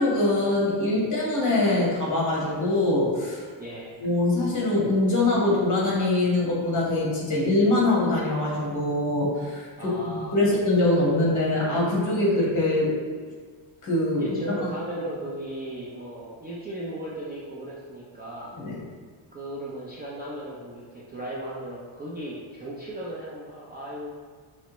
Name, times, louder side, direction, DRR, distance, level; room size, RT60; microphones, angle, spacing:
voice 1, 0.0-3.5 4.0-12.9 13.8-14.6 18.5-18.8, left 2 dB, 35° left, -5 dB, 1.2 m, -23 dB
voice 2, 3.6-4.0 9.8-10.4 14.2-18.6 19.3-24.1, right 1 dB, 20° right, -7 dB, 0.4 m, -36 dB
5.4 x 3.1 x 2.9 m, 1.5 s
cardioid pair, 170°, 49 cm